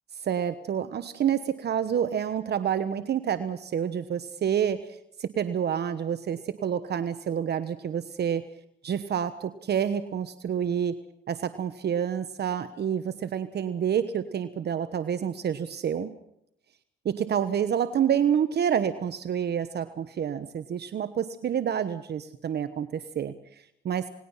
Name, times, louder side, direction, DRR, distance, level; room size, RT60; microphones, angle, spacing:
voice 1, 0.1-8.4 8.8-11.0 11.3-16.1 17.0-24.1, right 8 dB, 55° right, 11 dB, 1.2 m, -28 dB
28.0 x 19.5 x 5.7 m, 0.74 s
cardioid pair, 90°, 20 cm